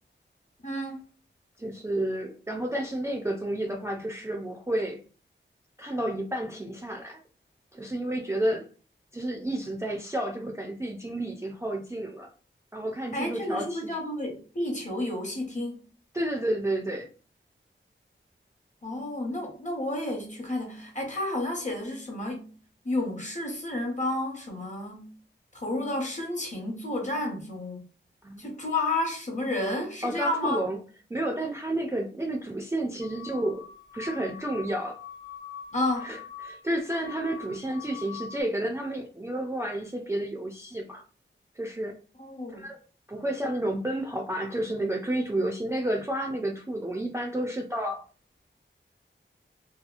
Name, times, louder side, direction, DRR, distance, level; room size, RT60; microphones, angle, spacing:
voice 1, 0.6-1.0 13.1-15.8 18.8-22.5 22.8-25.1 25.5-27.8 28.4-30.6 35.7-36.1 42.2-42.6, left 1 dB, 35° left, 0.8 m, -31 dB
voice 2, 1.6-5.0 5.8-7.2 7.7-8.7 9.1-12.3 12.7-14.0 16.1-17.1 28.2-28.6 30.0-30.8 31.1-33.7 33.9-35.0 36.0-41.0 41.6-42.0 42.5-42.8 43.1-48.0, right 1 dB, 15° right, 0.3 m, -31 dB
sound 1, 33.0-38.4, left 8 dB, 65° left, 0.9 m, -44 dB
2.8 x 2.3 x 2.4 m
wide cardioid pair, 95°, 20 cm